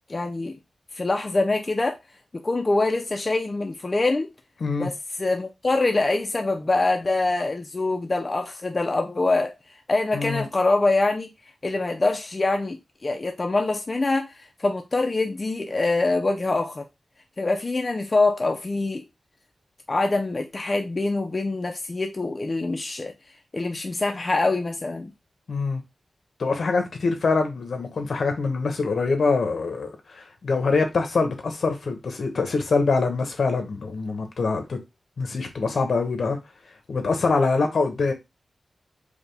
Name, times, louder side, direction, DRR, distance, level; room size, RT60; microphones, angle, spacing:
voice 1, 0.1-0.6 0.9-2.0 2.3-4.3 4.8-9.5 9.9-11.3 11.6-16.8 17.4-19.0 19.9-23.1 23.5-25.1, left 2 dB, 35° left, 0.5 m, -24 dB
voice 2, 10.1-10.5 25.5-25.8 26.4-34.8 35.2-36.4 36.9-38.1, left 4 dB, 70° left, 1.0 m, -24 dB
5.0 x 2.2 x 3.3 m
wide cardioid pair, 115°, 0 cm